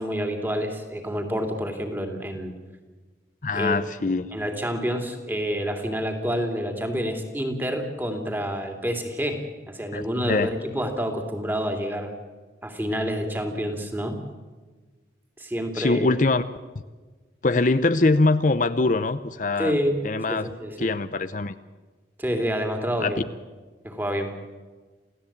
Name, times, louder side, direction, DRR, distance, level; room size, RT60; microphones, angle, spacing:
voice 1, 0.0-2.5 3.5-3.8 4.3-12.1 12.6-14.1 15.4-16.1 19.6-20.0 20.3-20.9 22.2-23.2 23.8-24.4, equal, 10° right, 4 dB, 2.8 m, -28 dB
voice 2, 3.4-4.3 9.9-10.5 15.7-16.4 17.4-19.8 20.0-20.5 20.8-21.5 23.0-23.1, left 3 dB, 45° left, 11 dB, 0.7 m, -23 dB
28.0 x 16.0 x 8.7 m, 1.4 s
head